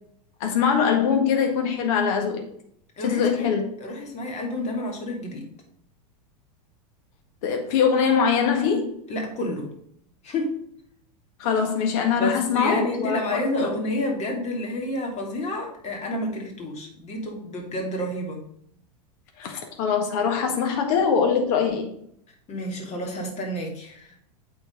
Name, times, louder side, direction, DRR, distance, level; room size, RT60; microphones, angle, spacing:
voice 1, 0.4-2.5 3.0-3.6 7.4-8.9 11.4-13.7 19.4-21.9, left 6 dB, 55° left, 3 dB, 1.8 m, -22 dB
voice 2, 3.0-3.5 3.8-5.4 9.1-9.7 10.2-10.5 12.2-18.4 22.5-24.1, left 1 dB, 30° left, 1 dB, 2.9 m, -30 dB
8.7 x 4.6 x 5.4 m, 0.68 s
hypercardioid pair, 100°, 21 cm